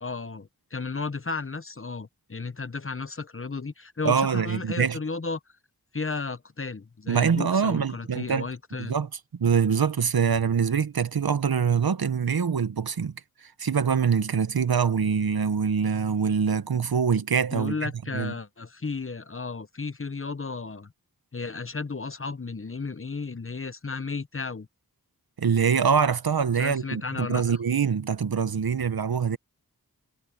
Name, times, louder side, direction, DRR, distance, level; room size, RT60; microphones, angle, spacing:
voice 1, 0.0-5.4 5.9-9.0 17.5-20.9 21.3-24.7 26.5-27.6, left 4 dB, 35° left, 0.9 m, -34 dB
voice 2, 4.0-5.0 7.1-8.5 8.8-9.1 9.4-13.1 13.6-18.3 25.4-29.4, right 6 dB, 75° right, 1.0 m, -24 dB
wide cardioid pair, 60°, 37 cm